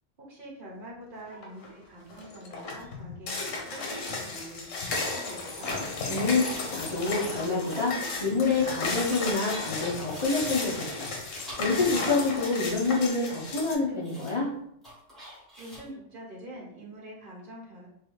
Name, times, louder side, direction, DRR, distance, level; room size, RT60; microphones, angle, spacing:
voice 1, 0.2-4.6 4.9-5.7 15.6-17.9, right 1 dB, 45° right, -4 dB, 1.0 m, -45 dB
sound 1, 1.3-1.7 2.1-13.7, left 3 dB, 85° left, 1.1 m, -34 dB
sound 2, 6.0-6.7 7.1-7.3 7.6-8.2 8.5-9.3 9.6-10.3 10.8-12.2 12.4-13.1 13.4-13.5 14.0-14.4 14.8-15.9, equal, ahead, 0.9 m, -48 dB
voice 2, 6.1-14.5, left 3 dB, 35° left, -6 dB, 0.5 m, -27 dB
3.1 x 2.3 x 3.1 m, 0.72 s
omnidirectional pair, 1.3 m